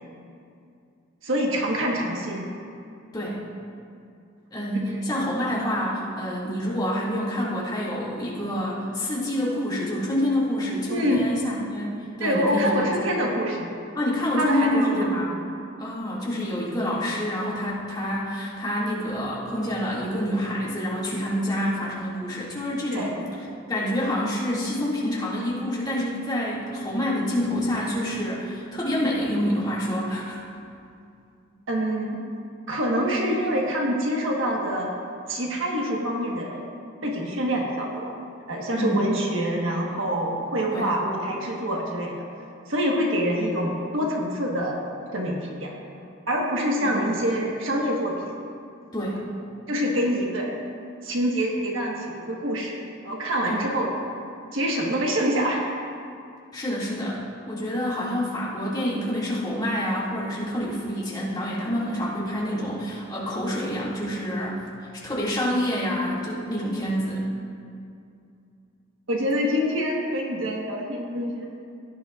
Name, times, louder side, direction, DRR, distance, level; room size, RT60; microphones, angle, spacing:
voice 1, 1.2-2.5 4.8-5.2 10.9-11.3 12.2-13.7 14.3-14.9 22.9-23.1 31.7-32.2 32.7-34.9 35.3-36.6 37.0-38.1 38.5-42.2 42.7-44.8 45.1-45.7 46.3-48.3 49.7-50.5 51.0-53.9 54.5-55.7 69.1-71.5, equal, 70° right, -1 dB, 1.4 m, -26 dB
voice 2, 3.1-3.5 4.5-12.8 14.0-15.4 15.8-23.2 23.7-30.4 38.7-39.1 40.7-40.9 46.8-47.0 48.9-49.3 53.5-53.7 56.5-64.6 64.9-67.2, equal, 20° left, -7 dB, 2.2 m, -27 dB
16.5 x 10.5 x 2.5 m, 2.4 s
head